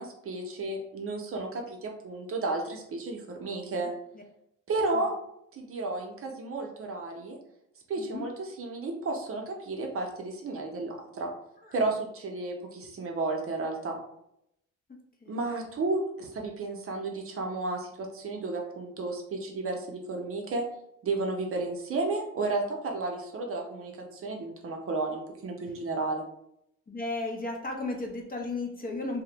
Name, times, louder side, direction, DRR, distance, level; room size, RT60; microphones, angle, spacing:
voice 1, 0.0-3.9 4.7-5.1 5.5-7.4 7.9-8.3 8.6-11.3 11.7-14.0 15.3-20.6 21.0-26.2, right 3 dB, 45° right, 1 dB, 0.6 m, -32 dB
voice 2, 8.0-8.3 11.6-11.9 15.2-15.4 26.9-29.2, left 2 dB, 30° left, 1 dB, 0.6 m, -35 dB
2.4 x 2.1 x 2.9 m, 0.77 s
cardioid pair, 90°, 30 cm